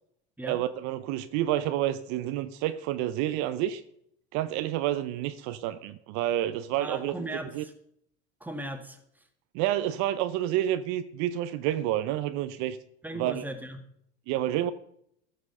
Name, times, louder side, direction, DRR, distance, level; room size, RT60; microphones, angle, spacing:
voice 1, 0.4-3.8 4.3-7.1 7.5-7.6 9.5-12.8 13.1-13.5 14.3-14.7, right 13 dB, 55° right, 0.7 m, -29 dB
voice 2, 6.8-7.7 8.4-9.0 13.0-13.8, right 1 dB, 5° right, 1.8 m, -37 dB
14.5 x 6.3 x 5.5 m
hypercardioid pair, 85°, 33 cm